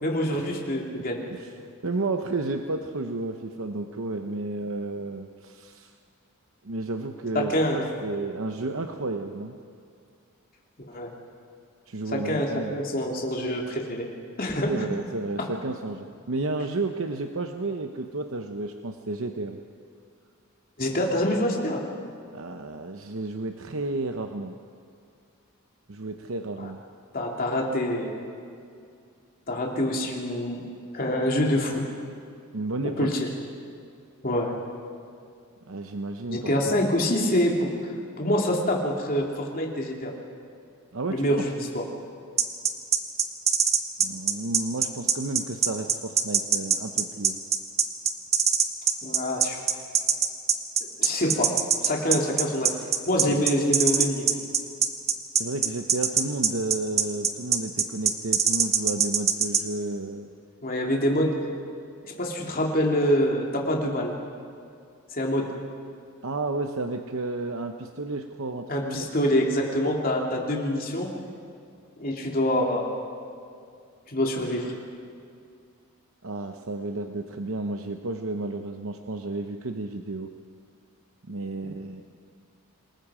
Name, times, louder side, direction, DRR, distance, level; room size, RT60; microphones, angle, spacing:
voice 1, 0.0-1.2 7.3-7.9 10.9-11.1 12.1-14.1 14.4-14.7 15.4-15.5 20.8-21.8 26.6-26.7 27.1-28.1 29.5-30.6 30.9-31.8 33.0-33.3 34.2-34.5 36.3-37.7 38.2-40.1 41.1-41.9 49.0-49.6 51.0-51.5 51.8-52.7 53.1-54.4 60.6-61.3 62.0-64.1 65.1-65.5 68.7-71.1 72.0-72.9 74.1-74.7, equal, 40° left, 0 dB, 2.8 m, -25 dB
voice 2, 1.3-5.9 6.6-9.6 11.9-13.0 14.7-19.6 22.3-24.6 25.9-26.8 32.5-33.1 35.7-37.0 40.9-41.5 44.0-47.4 53.3-53.4 55.4-60.3 66.2-69.1 76.2-80.3 81.3-82.0, right 2 dB, 65° right, 5 dB, 0.8 m, -32 dB
sound 1, 42.4-59.6, right 7 dB, 30° right, 1.1 m, -22 dB
27.5 x 19.5 x 5.0 m, 2.4 s
head